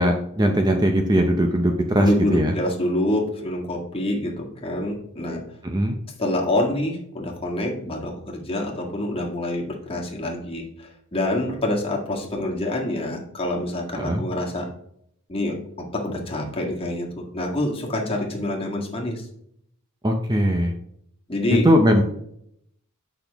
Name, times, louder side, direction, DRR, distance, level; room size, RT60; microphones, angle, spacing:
voice 1, 0.0-2.5 5.6-6.0 14.0-14.2 20.0-20.7 21.6-22.0, equal, 20° right, 4 dB, 0.7 m, -20 dB
voice 2, 2.0-5.4 6.2-14.7 15.3-19.3 21.3-21.7, left 1 dB, 25° left, -1 dB, 1.7 m, -26 dB
8.6 x 6.0 x 3.5 m, 0.71 s
head